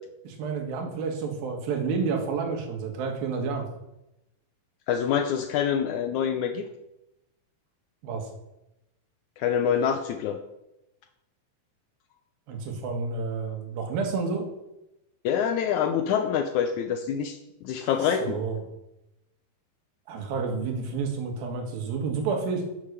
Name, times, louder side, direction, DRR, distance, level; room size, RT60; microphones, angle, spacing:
voice 1, 0.2-3.7 8.0-8.3 12.5-14.5 17.8-18.6 20.1-22.7, right 5 dB, 90° right, 3 dB, 3.5 m, -30 dB
voice 2, 4.9-6.6 9.4-10.4 15.2-17.4 17.6-18.4, left 8 dB, 80° left, 7 dB, 1.8 m, -26 dB
10.0 x 7.5 x 6.7 m, 0.91 s
omnidirectional pair, 4.0 m